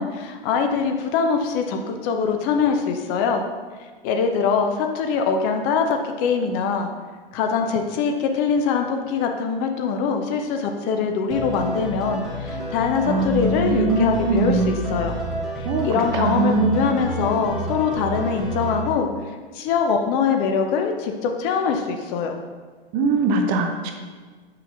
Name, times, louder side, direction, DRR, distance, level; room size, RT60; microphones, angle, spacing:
voice 1, 0.0-3.4 4.0-6.9 7.3-15.2 15.6-19.1 19.5-22.4, left 5 dB, 30° left, 4 dB, 0.6 m, -23 dB
sound 1, 11.3-18.9, equal, ahead, 0.9 m, -30 dB
voice 2, 13.1-14.7 15.7-15.9 16.1-16.8 22.9-23.9, right 3 dB, 30° right, 5 dB, 0.6 m, -22 dB
8.3 x 5.7 x 2.5 m, 1.4 s
figure-of-eight pair, 95°, 29 cm